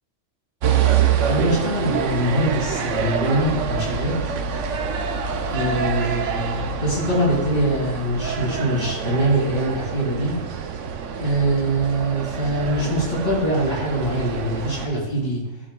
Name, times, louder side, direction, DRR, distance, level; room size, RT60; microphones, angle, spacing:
sound 1, 0.6-14.9, right 7 dB, 85° right, 1.0 m, -26 dB
voice 1, 1.2-4.4 5.5-10.4 11.2-15.4, right 1 dB, 40° left, -6 dB, 3.1 m, -23 dB
13.5 x 5.1 x 2.3 m, 1.1 s
omnidirectional pair, 1.2 m